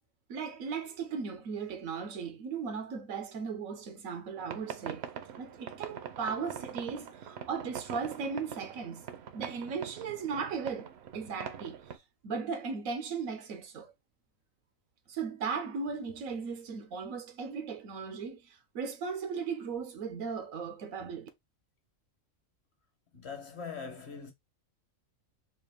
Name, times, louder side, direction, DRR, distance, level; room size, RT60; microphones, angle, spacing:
voice 1, 0.3-5.1 5.4-9.1 9.3-11.8 12.2-13.9 15.1-21.3, right 5 dB, 85° right, 1.2 m, -37 dB
sound 1, 4.4-12.0, right 8 dB, 60° right, 0.8 m, -43 dB
voice 2, 23.1-24.3, left 5 dB, 55° left, 1.2 m, -41 dB
4.2 x 2.4 x 3.4 m
omnidirectional pair, 1.4 m